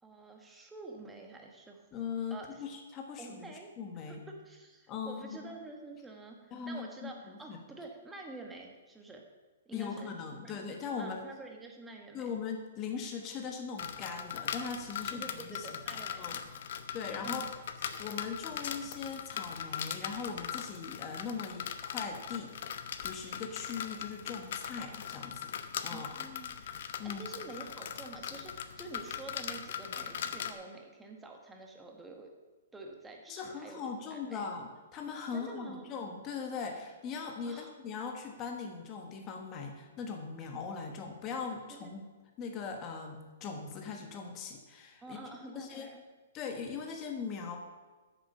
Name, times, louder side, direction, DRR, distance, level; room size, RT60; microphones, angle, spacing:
voice 1, 0.0-1.9 2.3-2.6 3.1-3.7 4.1-9.2 9.6-10.1 10.4-10.6 11.0-12.4 15.1-16.2 17.2-17.5 25.9-32.3 32.7-34.4 35.3-35.9 37.4-37.7 41.7-41.9 45.0-46.0, right 2 dB, 5° right, 1 dB, 1.3 m, -48 dB
voice 2, 1.9-4.2 4.9-5.5 6.5-7.1 7.5-7.6 9.7-11.3 12.1-15.7 16.2-16.4 16.9-17.4 18.0-25.5 25.8-26.1 27.0-27.2 33.3-42.0 42.4-45.2 45.5-45.9 46.3-47.6, left 5 dB, 25° left, 3 dB, 1.3 m, -40 dB
sound 1, 13.8-30.5, left 8 dB, 55° left, 0.8 m, -40 dB
9.1 x 6.9 x 6.6 m, 1.3 s
hypercardioid pair, 155°, 0 cm